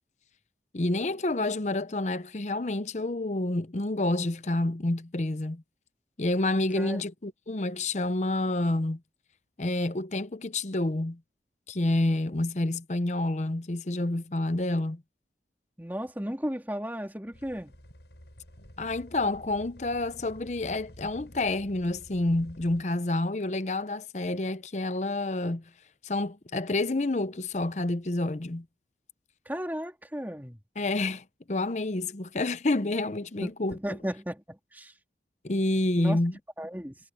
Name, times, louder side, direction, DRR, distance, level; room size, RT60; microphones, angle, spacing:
voice 1, 0.7-5.6 6.2-9.0 9.6-11.2 11.7-15.0 18.8-25.6 26.0-28.7 30.8-33.8 35.4-36.4, left 2 dB, 40° left, 0.8 m, -28 dB
voice 2, 15.8-17.8 29.5-30.6 33.4-34.9 36.0-36.2 36.6-37.0, equal, 10° right, 3.5 m, -35 dB
sound 1, 17.3-22.8, equal, 75° left, 7.4 m, -50 dB
head